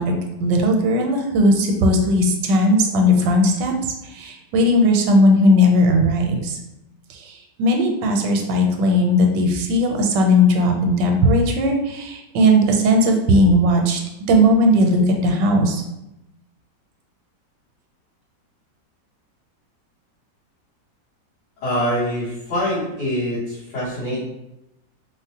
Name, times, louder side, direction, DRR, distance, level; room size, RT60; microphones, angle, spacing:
voice 1, 0.0-6.6 7.1-14.0 14.3-15.8, equal, 85° right, 2 dB, 1.2 m, -17 dB
voice 2, 21.6-24.2, equal, 80° left, -13 dB, 1.8 m, -24 dB
3.7 x 2.0 x 2.7 m, 0.89 s
omnidirectional pair, 1.9 m